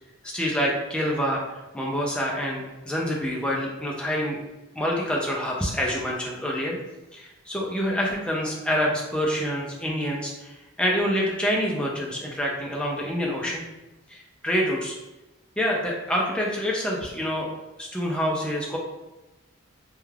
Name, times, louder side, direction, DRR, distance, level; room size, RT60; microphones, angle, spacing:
voice 1, 0.2-4.4 4.7-6.8 7.1-13.6 14.1-15.0 15.6-17.5 17.8-18.8, equal, 5° left, -3 dB, 0.3 m, -27 dB
2.3 x 2.2 x 3.1 m, 1.1 s
head